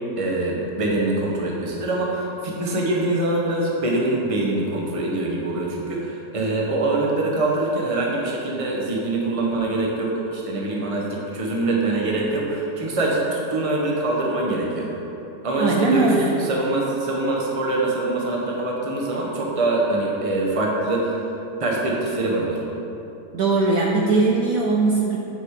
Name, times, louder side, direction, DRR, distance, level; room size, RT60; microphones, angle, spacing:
voice 1, 0.2-11.1 11.3-14.9 15.4-16.1 16.4-21.2 21.6-22.6, right 2 dB, 25° right, -2 dB, 0.9 m, -24 dB
voice 2, 15.6-16.4 23.3-25.2, right 3 dB, 65° right, -2 dB, 1.0 m, -20 dB
9.3 x 5.1 x 4.9 m, 3.0 s
omnidirectional pair, 1.9 m